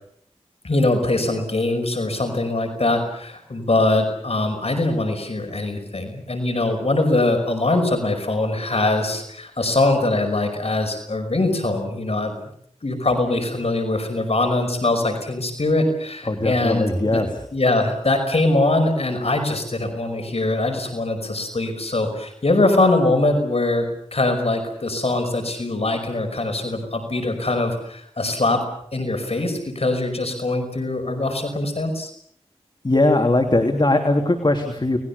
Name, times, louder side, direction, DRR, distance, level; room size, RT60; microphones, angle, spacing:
voice 1, 0.6-12.4 12.8-17.2 17.5-23.9 24.1-28.6 28.9-32.1, left 2 dB, 65° left, 5 dB, 5.5 m, -22 dB
voice 2, 16.3-17.3 32.8-35.0, left 2 dB, 45° left, 4 dB, 3.2 m, -19 dB
30.0 x 20.5 x 7.1 m, 0.67 s
wide cardioid pair, 55°, 11 cm